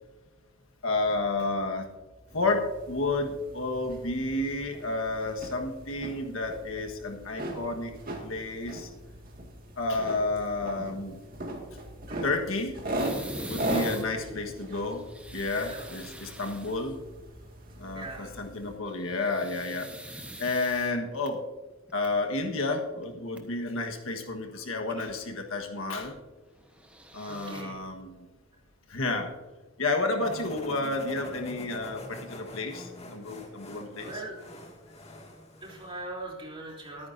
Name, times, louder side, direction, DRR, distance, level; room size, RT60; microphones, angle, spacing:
voice 1, 0.8-1.9 2.3-7.9 8.2-8.9 9.7-11.2 12.2-12.8 13.5-15.1 15.3-17.0 17.8-21.4 21.9-26.1 27.1-28.3 28.9-29.3 29.8-34.1, left 2 dB, 75° left, 3 dB, 1.5 m, -31 dB
sound 1, 2.3-18.8, right 1 dB, 45° right, 2.1 m, -39 dB
sound 2, 13.0-14.1 14.9-16.9 18.9-21.3 21.9-22.1 23.0-23.1 23.4-23.5 26.7-27.6, right 1 dB, 5° right, 1.1 m, -41 dB
voice 2, 13.9-14.5 15.7-16.2 17.9-18.4 24.5-24.6 24.9-25.0 27.3-27.8 34.0-34.4 35.6-37.1, right 2 dB, 25° right, -3 dB, 3.3 m, -41 dB
sound 3, 30.2-36.0, left 1 dB, 30° left, 2.2 m, -45 dB
22.5 x 9.5 x 2.7 m, 1.2 s
head